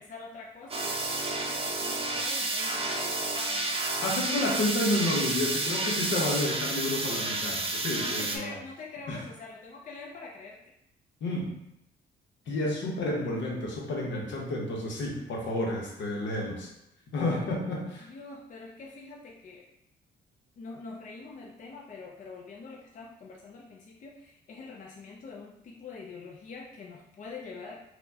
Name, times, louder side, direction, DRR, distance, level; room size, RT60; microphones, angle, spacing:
voice 1, 0.0-3.8 7.9-10.7 12.9-13.1 18.0-19.7 20.6-27.8, left 4 dB, 40° left, -1 dB, 0.5 m, -45 dB
sound 1, 0.7-8.4, right 2 dB, 30° right, 0.6 m, -30 dB
voice 2, 4.0-8.5 9.1-9.2 11.2-11.5 12.5-16.7 17.1-18.1, left 1 dB, 65° left, -1 dB, 0.9 m, -30 dB
4.2 x 2.2 x 2.7 m, 0.81 s
cardioid pair, 90°, 20 cm